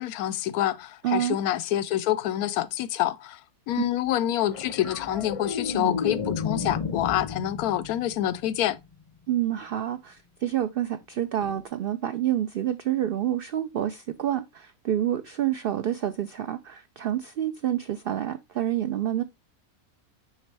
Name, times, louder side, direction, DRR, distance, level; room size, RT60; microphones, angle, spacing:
voice 1, 0.0-3.4 3.7-8.8, left 12 dB, 85° left, 1.1 m, -27 dB
voice 2, 1.0-1.4 3.8-3.9 9.3-19.2, right 11 dB, 85° right, 0.5 m, -28 dB
sound 1, 4.5-9.0 11.4-11.6, left 5 dB, 35° left, 0.5 m, -32 dB
6.3 x 5.1 x 3.3 m
omnidirectional pair, 1.5 m